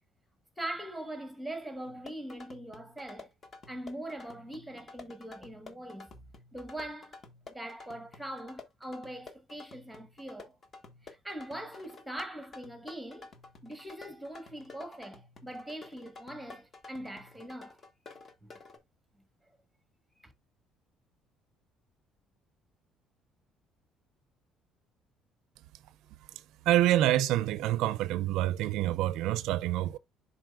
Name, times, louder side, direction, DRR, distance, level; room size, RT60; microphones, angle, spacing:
voice 1, 0.6-3.3 3.7-6.1 6.5-7.2 7.5-10.6 11.0-13.3 13.6-17.8 18.4-18.5 20.2-20.3, right 1 dB, ahead, 1.4 m, -42 dB
sound 1, 1.8-18.8, left 3 dB, 30° left, 1.3 m, -51 dB
voice 2, 26.7-30.0, right 14 dB, 75° right, 0.4 m, -27 dB
11.0 x 4.0 x 2.4 m
cardioid pair, 145°, 0 cm